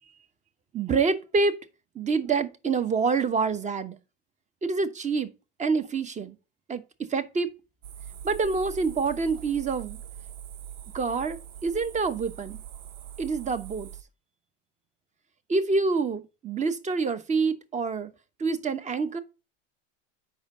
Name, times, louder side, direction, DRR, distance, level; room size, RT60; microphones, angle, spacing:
voice 1, 0.7-1.5 1.9-4.0 4.6-5.3 5.6-6.3 6.7-6.8 7.1-7.5 8.2-10.0 10.9-12.6 13.2-13.9 15.5-18.1 18.4-19.2, right 4 dB, 20° right, 0.9 m, -26 dB
sound 1, 7.8-14.0, right 10 dB, 80° right, 0.9 m, -42 dB
7.0 x 5.4 x 3.7 m
hypercardioid pair, 100°, 36 cm